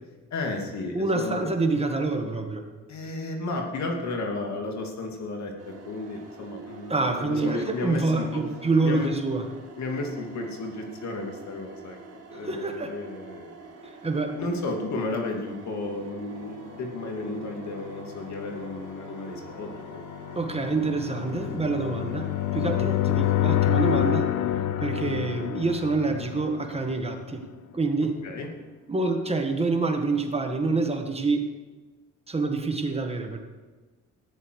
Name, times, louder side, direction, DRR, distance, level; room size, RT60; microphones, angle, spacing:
voice 1, 0.3-1.4 2.9-8.4 8.8-9.1 9.8-12.0 12.3-14.0 14.3-20.0 22.6-22.9 28.2-28.5, left 2 dB, 65° left, 2 dB, 2.5 m, -33 dB
voice 2, 0.9-2.7 6.9-9.4 12.3-12.9 13.8-14.4 20.3-24.3 24.8-27.4 27.7-28.1 28.9-31.5 32.3-33.4, right 3 dB, 20° right, 4 dB, 1.6 m, -27 dB
sound 1, 5.6-24.1, right 4 dB, 55° right, 2.4 m, -46 dB
sound 2, 16.6-27.4, left 12 dB, 90° left, 0.7 m, -29 dB
14.0 x 10.0 x 4.8 m, 1.3 s
cardioid pair, 90°, 30 cm